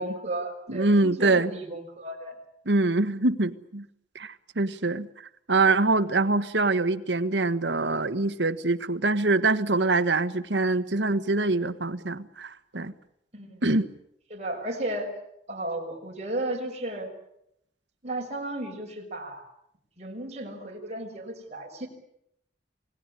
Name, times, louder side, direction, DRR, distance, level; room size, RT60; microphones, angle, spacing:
voice 1, 0.0-2.4 13.3-13.6 14.3-15.1 15.5-17.1 18.0-19.4 20.0-21.9, right 1 dB, 40° right, 0 dB, 6.1 m, -34 dB
voice 2, 0.7-1.5 2.6-3.8 4.1-5.1 5.5-12.9 13.6-13.9, right 2 dB, 80° right, 12 dB, 1.4 m, -24 dB
28.5 x 19.0 x 10.0 m, 0.78 s
head